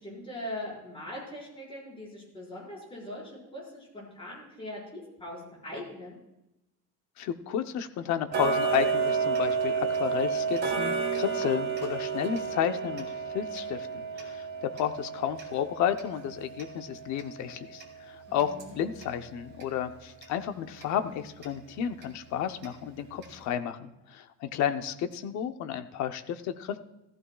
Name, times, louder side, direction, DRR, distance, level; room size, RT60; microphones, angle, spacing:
voice 1, 0.0-6.2 18.3-18.8, left 1 dB, 15° left, -5 dB, 5.1 m, -41 dB
voice 2, 7.2-13.9 14.2-26.9, left 9 dB, 55° left, 8 dB, 0.8 m, -32 dB
Tick-tock, 8.3-19.2 19.6-19.7 20.2-20.3 20.8-20.9 21.4-21.5 22.0-22.1 22.6-22.7 23.2-23.3, right 5 dB, 30° right, 1.9 m, -31 dB
15.0 x 14.0 x 2.3 m, 0.90 s
cardioid pair, 175°, 34 cm